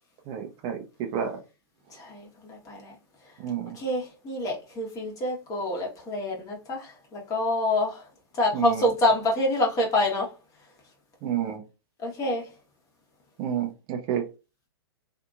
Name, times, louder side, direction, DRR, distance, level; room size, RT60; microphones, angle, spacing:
voice 1, 0.3-1.4 3.4-3.6 8.5-8.9 11.2-11.6 13.4-14.2, right 9 dB, 35° right, 0.6 m, -30 dB
voice 2, 1.9-2.9 3.7-8.0 8.3-10.3 12.0-12.5, left 1 dB, 25° left, 1.2 m, -27 dB
2.8 x 2.6 x 2.4 m
hypercardioid pair, 125°, 14 cm